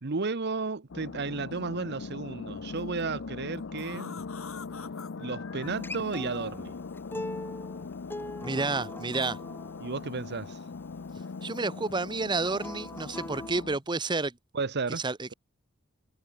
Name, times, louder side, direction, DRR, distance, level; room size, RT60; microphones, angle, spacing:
voice 1, 0.0-4.2 5.2-6.7 9.8-10.6 14.5-15.0, right 4 dB, 55° right, 0.9 m, -33 dB
sound 1, 0.9-13.8, left 4 dB, 65° left, 0.6 m, -40 dB
sound 2, 2.8-3.0 3.5-5.7 6.9-7.0 7.7-7.8 8.8-9.4 11.2-12.0 12.2-12.6 13.2-13.4 13.8-14.2, left 5 dB, 85° left, 5.6 m, -48 dB
Acoustic guitar, 5.6-10.8 12.4-13.6, left 1 dB, 10° left, 1.0 m, -42 dB
voice 2, 8.4-9.4 11.4-14.3 15.0-15.3, right 3 dB, 20° right, 0.8 m, -30 dB
head